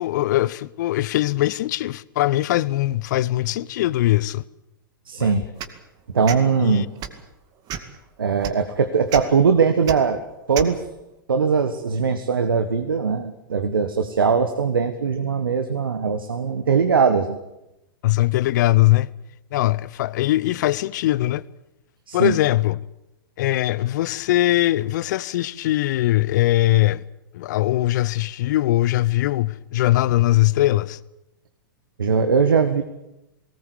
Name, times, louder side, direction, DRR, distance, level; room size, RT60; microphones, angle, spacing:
voice 1, 0.0-4.4 5.2-5.4 6.6-6.9 18.0-19.1 19.5-21.4 22.1-22.8 23.4-27.0 27.3-31.0, left 16 dB, 55° left, 0.8 m, -21 dB
voice 2, 5.1-5.4 6.1-6.9 8.2-10.2 10.5-10.8 11.3-17.4 22.1-22.4 32.0-32.8, right 5 dB, 80° right, 1.5 m, -20 dB
sound 1, 5.6-5.8 6.2-6.4 7.0-7.2 7.7-8.0 8.4-8.5 9.1-9.2 9.8-10.0 10.5-10.7, right 9 dB, 35° right, 2.2 m, -30 dB
19.5 x 18.5 x 8.4 m
hypercardioid pair, 105°, 12 cm